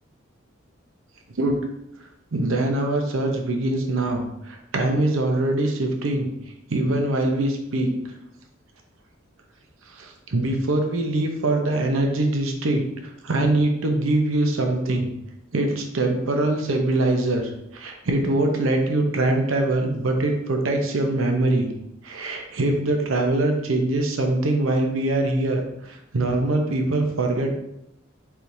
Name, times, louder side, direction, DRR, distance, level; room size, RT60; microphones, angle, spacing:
voice 1, 2.3-6.3 6.7-7.9 9.9-15.1 15.5-21.7 22.0-27.5, right 2 dB, 80° right, 3 dB, 0.7 m, -23 dB
4.4 x 3.4 x 2.6 m, 0.83 s
head